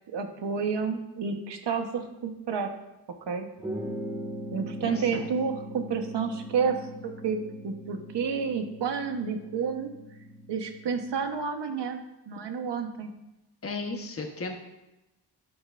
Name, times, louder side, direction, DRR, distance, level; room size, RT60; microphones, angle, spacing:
voice 1, 0.1-2.7 3.3-3.5 4.5-7.4 7.6-9.9 10.5-12.0 12.3-13.1, right 6 dB, 80° right, 5 dB, 1.3 m, -30 dB
sound 1, 3.6-11.3, equal, 15° right, 2.4 m, -40 dB
voice 2, 4.8-5.3 13.6-14.5, left 3 dB, 35° left, 2 dB, 1.3 m, -35 dB
12.5 x 9.6 x 2.6 m, 0.95 s
wide cardioid pair, 105°, 41 cm